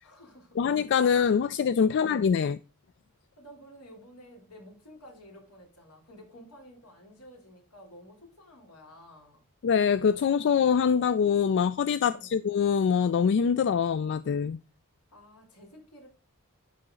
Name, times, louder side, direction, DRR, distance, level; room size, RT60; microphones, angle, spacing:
voice 1, 0.0-0.7 1.9-2.2 3.4-9.4 12.0-12.4 15.1-16.1, equal, 80° left, 3.3 m, -52 dB
voice 2, 0.6-2.6 9.6-14.6, left 6 dB, 55° left, 0.3 m, -24 dB
11.5 x 4.0 x 3.7 m
head